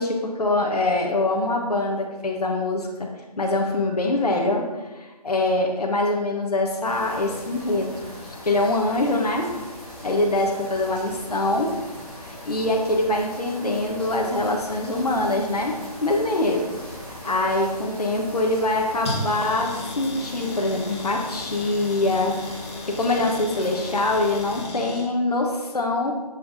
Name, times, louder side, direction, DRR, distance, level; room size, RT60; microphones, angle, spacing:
voice 1, 0.0-3.1 3.4-4.6 4.9-7.9 8.4-9.5 10.0-11.7 12.2-15.7 16.0-16.7 17.2-22.5 22.8-26.1, left 2 dB, 70° left, 1 dB, 1.3 m, -24 dB
sound 1, 6.8-24.6, left 1 dB, 5° left, 1.5 m, -40 dB
sound 2, 19.0-25.0, left 2 dB, 40° left, 2.0 m, -35 dB
7.1 x 5.8 x 4.0 m, 1.2 s
figure-of-eight pair, 160°, 20 cm